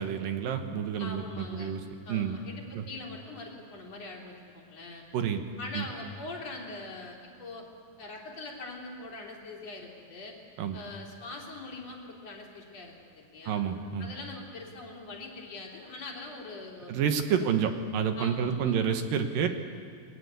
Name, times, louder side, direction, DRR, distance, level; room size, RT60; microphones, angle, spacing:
voice 1, 0.0-1.8 2.1-2.4 2.7-2.8 5.1-5.4 5.7-5.8 10.6-10.8 13.5-14.1 16.9-19.5, right 7 dB, 75° right, 6 dB, 3.0 m, -29 dB
voice 2, 1.0-1.7 2.1-5.0 5.6-7.6 8.0-10.3 10.7-13.6 14.0-16.9 17.3-17.5 18.2-18.8, left 2 dB, 45° left, -1 dB, 4.3 m, -43 dB
29.0 x 22.0 x 8.3 m, 2.1 s
omnidirectional pair, 4.2 m